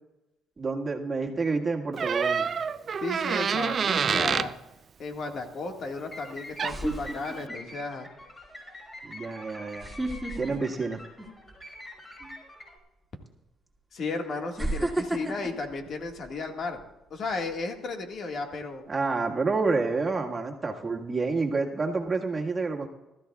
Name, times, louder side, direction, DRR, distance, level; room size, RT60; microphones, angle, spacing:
voice 1, 0.6-2.6 9.0-9.9 10.4-11.0 12.2-12.3 18.9-22.9, right 4 dB, 30° right, 1 dB, 1.7 m, -29 dB
Door, 2.0-4.5 6.3-6.4 6.6-7.0, right 6 dB, 45° right, 0.5 m, -27 dB
voice 2, 3.0-4.5 5.0-8.1 13.9-16.8 17.1-18.8, left 3 dB, 60° left, 3 dB, 1.8 m, -34 dB
sound 1, 3.7-4.0 5.9-6.0 6.6-7.8 8.2-8.5 9.8-11.6 12.0-12.3 13.3-13.4 14.6-16.8 17.3-17.6, right 2 dB, 5° right, 2.4 m, -33 dB
sound 2, 5.9-12.8, left 1 dB, 25° left, 5.3 m, -45 dB
20.0 x 13.5 x 2.4 m, 0.99 s
cardioid pair, 85°, 0 cm